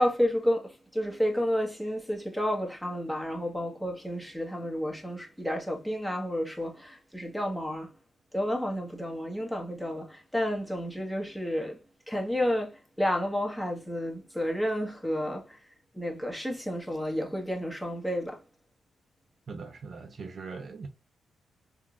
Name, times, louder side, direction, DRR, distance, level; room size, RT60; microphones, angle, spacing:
voice 1, 0.0-7.9 8.3-11.8 12.1-15.6 15.9-18.4, equal, 5° left, 1.3 m, -31 dB
voice 2, 19.5-20.9, right 4 dB, 55° right, 0.7 m, -40 dB
3.6 x 2.8 x 2.4 m
supercardioid pair, 55°, 0 cm